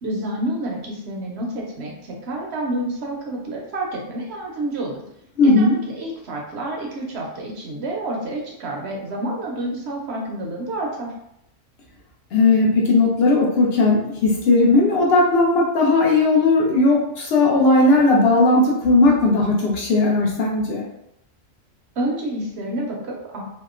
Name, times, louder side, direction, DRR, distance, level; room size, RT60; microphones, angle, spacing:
voice 1, 0.0-5.0 5.4-11.1 22.0-23.4, right 1 dB, 65° right, -1 dB, 0.8 m, -29 dB
voice 2, 5.4-5.8 12.3-20.8, left 2 dB, 65° left, -2 dB, 0.7 m, -17 dB
2.8 x 2.1 x 2.3 m, 0.80 s
omnidirectional pair, 1.3 m